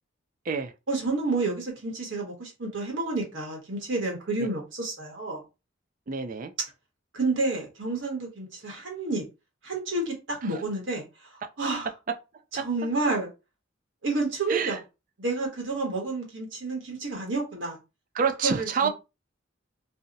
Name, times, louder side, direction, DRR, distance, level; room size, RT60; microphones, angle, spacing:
voice 1, 0.9-5.4 7.1-9.2 9.6-11.0 11.6-11.9 12.5-13.3 14.0-14.8 15.2-17.8 18.4-18.9, right 3 dB, 75° right, 1.0 m, -29 dB
voice 2, 6.1-6.5 11.4-11.5 12.6-12.7 14.5-14.8 18.1-18.9, right 6 dB, 45° right, 0.4 m, -27 dB
2.7 x 2.0 x 3.7 m
head